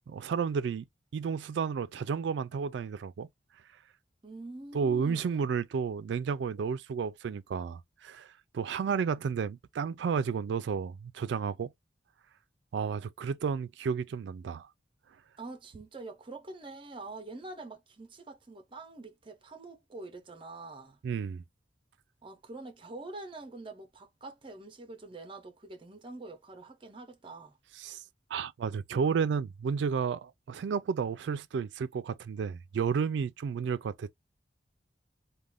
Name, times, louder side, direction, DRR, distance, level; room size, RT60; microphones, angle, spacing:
voice 1, 0.1-0.9 1.1-3.3 4.7-11.7 12.7-14.7 21.0-21.4 27.8-28.0 28.3-34.1, right 6 dB, 70° right, 0.3 m, -32 dB
voice 2, 4.2-5.5 15.4-21.0 22.2-27.6, right 2 dB, 25° right, 0.6 m, -45 dB
2.5 x 2.2 x 3.3 m
head